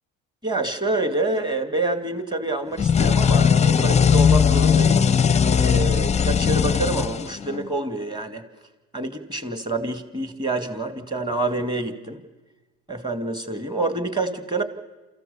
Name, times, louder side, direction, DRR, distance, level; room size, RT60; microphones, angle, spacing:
voice 1, 0.4-5.1 5.6-8.4 8.9-12.2 12.9-14.6, right 2 dB, 10° right, 8 dB, 2.3 m, -27 dB
sound 1, 2.8-7.7, left 7 dB, 20° left, 0.6 m, -18 dB
28.5 x 14.5 x 6.9 m, 1.1 s
supercardioid pair, 80°, 34 cm